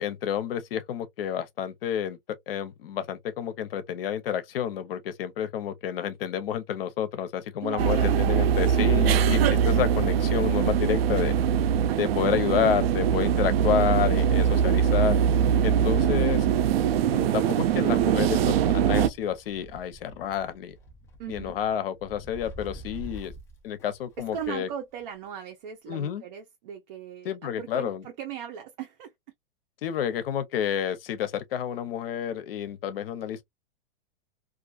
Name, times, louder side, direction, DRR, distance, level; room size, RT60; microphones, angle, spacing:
voice 1, 0.0-2.2 2.5-11.4 11.9-15.2 15.6-16.5 17.1-20.7 21.3-23.3 23.6-24.7 25.9-26.2 27.2-28.0 29.8-33.4, left 9 dB, 75° left, 0.7 m, -29 dB
voice 2, 7.6-8.3 11.9-12.2 21.2-21.5 24.3-29.1, right 9 dB, 50° right, 0.7 m, -38 dB
sound 1, 7.8-19.1, right 8 dB, 90° right, 0.4 m, -22 dB
Wind, 8.1-24.7 25.0-25.1 26.1-26.2, right 1 dB, 10° left, 0.3 m, -47 dB
2.5 x 2.3 x 2.3 m
supercardioid pair, 155°, 29 cm